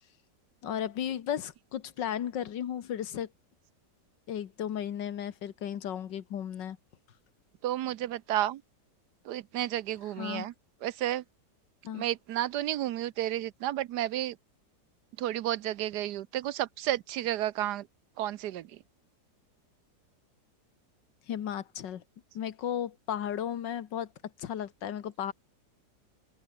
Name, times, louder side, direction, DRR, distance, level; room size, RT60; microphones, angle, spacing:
voice 1, 0.6-3.3 4.3-6.8 10.2-10.5 11.8-12.1 21.3-22.0 22.4-24.1 24.4-25.3, left 9 dB, 90° left, 1.9 m, -34 dB
voice 2, 7.6-8.6 9.2-10.5 10.8-11.2 11.9-14.4 15.2-17.9 18.2-18.7, right 13 dB, 75° right, 1.2 m, -31 dB
open air
omnidirectional pair, 1.9 m